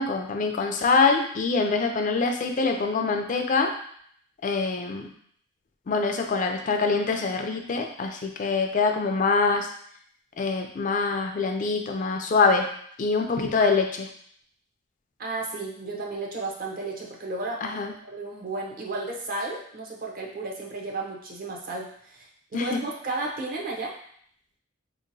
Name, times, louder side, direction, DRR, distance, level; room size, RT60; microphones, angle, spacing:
voice 1, 0.0-3.7 4.4-5.1 5.9-9.7 10.4-12.7 13.0-14.1 17.6-17.9 22.5-22.8, left 4 dB, 40° left, 4 dB, 0.3 m, -24 dB
voice 2, 15.2-21.9 22.1-22.3 22.5-23.9, right 2 dB, 45° right, -1 dB, 0.7 m, -33 dB
3.8 x 2.8 x 2.6 m, 0.63 s
head